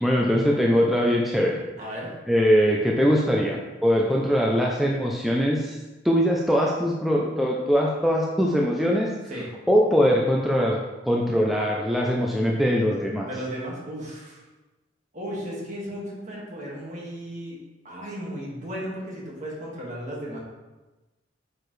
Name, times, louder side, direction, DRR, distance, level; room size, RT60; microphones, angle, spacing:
voice 1, 0.0-1.6 2.3-5.8 6.0-9.1 9.7-10.8 11.0-13.3, equal, ahead, -2 dB, 0.5 m, -22 dB
voice 2, 1.8-2.2 3.9-4.2 9.3-9.5 13.2-14.4 15.1-17.6 17.8-20.4, equal, 40° right, -4 dB, 1.9 m, -35 dB
8.2 x 4.7 x 3.3 m, 1.1 s
head